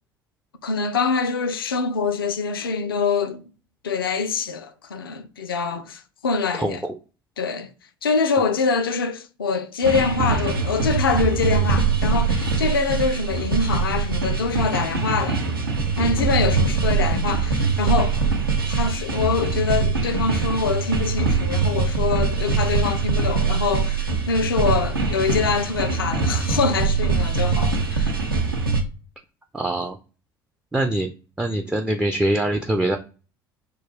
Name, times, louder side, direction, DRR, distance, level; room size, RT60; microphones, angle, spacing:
voice 1, 0.6-3.4 3.8-6.8 7.4-7.7 8.0-15.4 16.0-18.2 18.7-28.2, left 5 dB, 75° left, 0.4 m, -24 dB
voice 2, 6.6-6.9 16.0-16.3 29.5-30.0 30.7-31.1 31.4-33.0, right 1 dB, 5° right, 0.3 m, -24 dB
sound 1, 9.8-28.8, right 4 dB, 80° right, 0.6 m, -23 dB
2.2 x 2.2 x 3.4 m
figure-of-eight pair, 65°, 12 cm